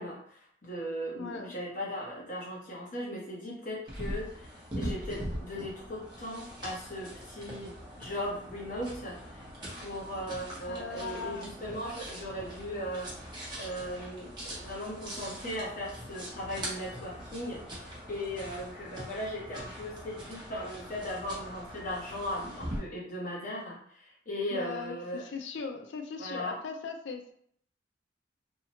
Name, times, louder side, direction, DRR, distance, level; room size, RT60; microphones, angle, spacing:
voice 1, 0.0-13.1 13.6-25.2 26.2-26.6, equal, 45° left, -3 dB, 0.8 m, -38 dB
voice 2, 1.1-1.5 10.7-11.5 24.5-27.3, left 5 dB, 70° left, 4 dB, 0.4 m, -39 dB
sound 1, 3.9-22.8, equal, 25° right, 0.7 m, -42 dB
2.8 x 2.1 x 2.8 m, 0.64 s
head